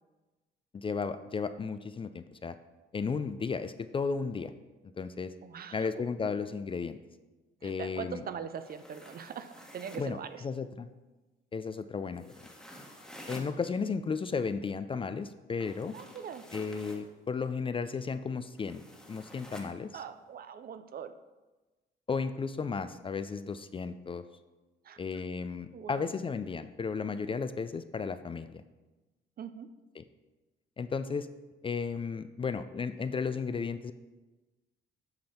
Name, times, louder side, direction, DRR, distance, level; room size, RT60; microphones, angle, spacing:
voice 1, 0.7-2.5 2.9-4.5 5.0-5.3 5.7-7.0 7.6-8.2 10.0-10.2 10.4-10.9 11.5-12.2 13.3-15.9 16.5-18.8 19.1-19.9 22.1-24.2 25.0-28.6 30.0-30.1 30.8-31.3 31.6-33.9, left 5 dB, 25° left, 12 dB, 0.4 m, -34 dB
voice 2, 5.4-5.9 7.6-10.4 15.9-16.5 19.9-21.1 24.8-25.2 25.7-26.1 29.4-29.7, right 7 dB, 50° right, 11 dB, 0.5 m, -42 dB
sound 1, 8.5-10.1 12.1-13.5 15.6-17.0 18.6-19.7, equal, 5° left, 1.3 m, -50 dB
7.8 x 5.5 x 4.3 m, 1.2 s
cardioid pair, 90°, 20 cm